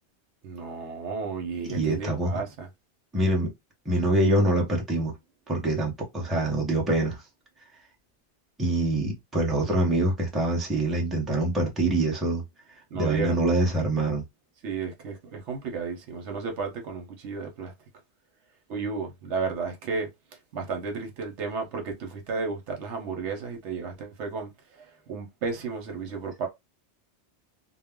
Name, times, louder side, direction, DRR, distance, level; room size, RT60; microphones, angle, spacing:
voice 1, 0.4-2.7 12.9-13.4 14.6-17.7 18.7-20.1 20.5-26.5, right 4 dB, 85° right, 1.0 m, -33 dB
voice 2, 1.7-2.3 3.1-3.5 3.9-5.1 5.5-7.2 8.6-12.4 12.9-14.2, right 1 dB, ahead, 0.6 m, -25 dB
2.3 x 2.0 x 3.5 m
omnidirectional pair, 1.1 m